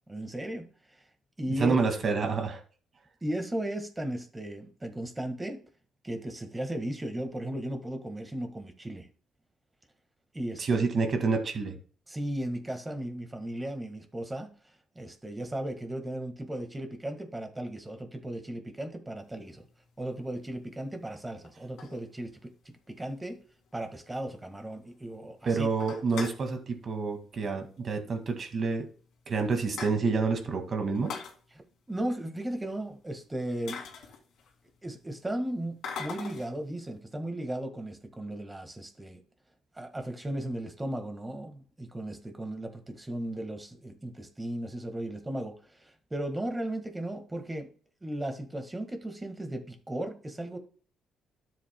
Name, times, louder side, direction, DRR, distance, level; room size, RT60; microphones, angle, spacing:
voice 1, 0.1-0.7 1.4-1.8 3.2-5.6 6.0-9.1 10.3-10.9 12.1-14.5 14.9-19.6 20.0-22.5 22.9-23.4 23.7-25.7 31.9-33.8 34.8-39.2 39.8-47.7 48.0-50.6, right 1 dB, 15° right, 5 dB, 1.6 m, -36 dB
voice 2, 1.6-2.6 10.6-11.7 25.5-28.9 29.3-31.1, right 4 dB, 50° right, 5 dB, 2.0 m, -28 dB
sound 1, 19.5-19.7 20.5-20.6 21.4-22.5 22.9-23.0 23.2-23.3 23.7-23.8 24.1-24.2 24.5-25.0 25.3-25.4 25.7-26.5 27.6-27.8 28.1-28.2 28.9-29.0 29.3-30.3 30.9-31.4 33.1-33.2 33.7-34.7 35.8-36.6, left 5 dB, 80° left, 2.1 m, -41 dB
12.5 x 7.6 x 2.2 m, 0.43 s
cardioid pair, 90°, 0 cm